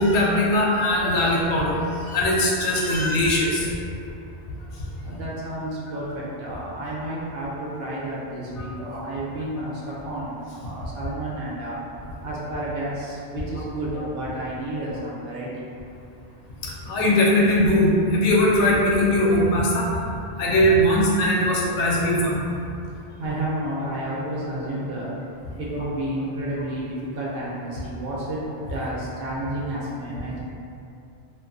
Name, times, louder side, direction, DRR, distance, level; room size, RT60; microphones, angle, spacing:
voice 1, 0.0-3.7 8.6-8.9 16.6-19.9 20.4-22.4 25.7-25.8, left 1 dB, 80° left, -4 dB, 0.9 m, -20 dB
voice 2, 5.0-11.8 12.2-15.6 23.1-25.1 25.6-28.4 28.7-30.4, right 1 dB, 65° right, -6 dB, 0.7 m, -31 dB
2.6 x 2.3 x 2.5 m, 2.6 s
omnidirectional pair, 1.2 m